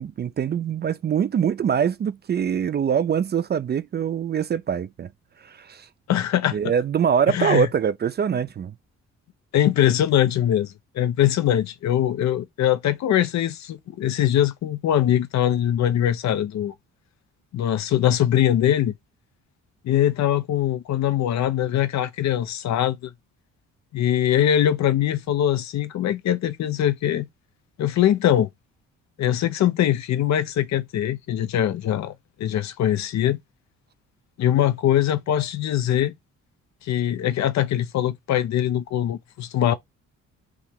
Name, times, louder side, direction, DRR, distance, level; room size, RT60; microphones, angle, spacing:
voice 1, 0.0-5.1 5.4-5.9 6.5-8.7, right 8 dB, 35° right, 0.4 m, -23 dB
voice 2, 6.1-6.6 7.3-7.7 9.5-16.7 17.5-18.9 19.8-23.1 23.9-27.3 27.8-28.5 29.2-32.1 32.4-33.4 34.4-36.1 36.8-39.7, left 11 dB, 65° left, 0.7 m, -22 dB
4.7 x 2.9 x 3.5 m
cardioid pair, 90°, 30 cm